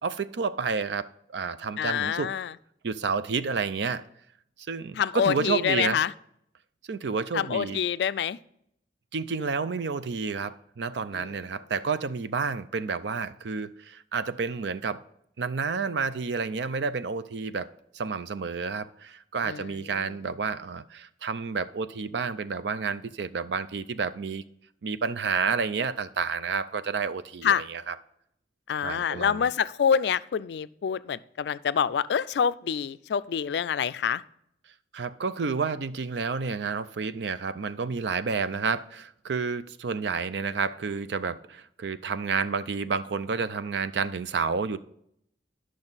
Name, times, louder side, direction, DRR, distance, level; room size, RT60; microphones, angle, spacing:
voice 1, 0.0-2.3 2.8-4.0 4.7-6.0 6.9-7.8 9.1-15.0 15.4-24.4 24.8-27.9 28.8-29.5 34.9-44.8, right 5 dB, 75° right, 0.5 m, -30 dB
voice 2, 1.8-2.5 5.0-6.1 7.3-8.4 11.1-11.4 19.4-20.2 27.4-27.6 28.7-34.2, left 7 dB, 70° left, 0.3 m, -27 dB
10.5 x 6.3 x 4.0 m
head